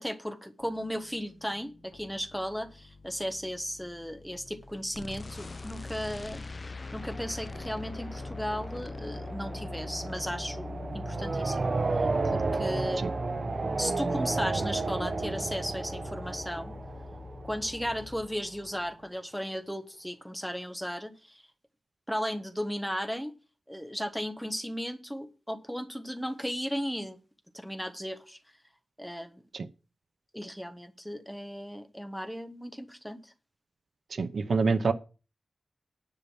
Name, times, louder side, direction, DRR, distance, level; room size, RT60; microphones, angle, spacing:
voice 1, 0.0-6.4 6.9-11.7 11.9-13.1 13.8-16.8 17.4-21.4 22.1-23.3 23.7-27.2 27.5-28.4 29.0-29.4 30.3-33.3, equal, ahead, 8 dB, 1.3 m, -35 dB
sound 1, 0.6-19.1, left 3 dB, 75° left, 1.5 m, -56 dB
sound 2, 4.9-18.3, left 3 dB, 40° left, 0.4 m, -41 dB
sound 3, 7.0-17.9, right 3 dB, 55° right, 0.8 m, -33 dB
voice 2, 34.1-34.9, right 4 dB, 80° right, 12 dB, 0.8 m, -26 dB
10.5 x 5.6 x 7.1 m, 0.34 s
wide cardioid pair, 110°, 0 cm